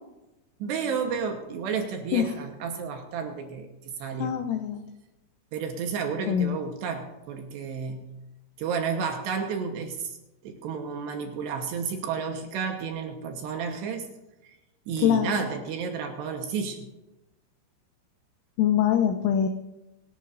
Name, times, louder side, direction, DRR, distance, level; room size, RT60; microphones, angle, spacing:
voice 1, 0.6-3.7 4.0-4.4 5.5-8.1 8.6-10.2 10.4-14.1 14.4-14.5 14.9-16.9, right 6 dB, 70° right, 4 dB, 2.8 m, -31 dB
voice 2, 4.2-4.8 6.3-6.6 15.0-15.5 18.6-19.5, left 9 dB, 80° left, 6 dB, 3.1 m, -23 dB
26.0 x 12.0 x 2.6 m, 1.0 s
omnidirectional pair, 6.0 m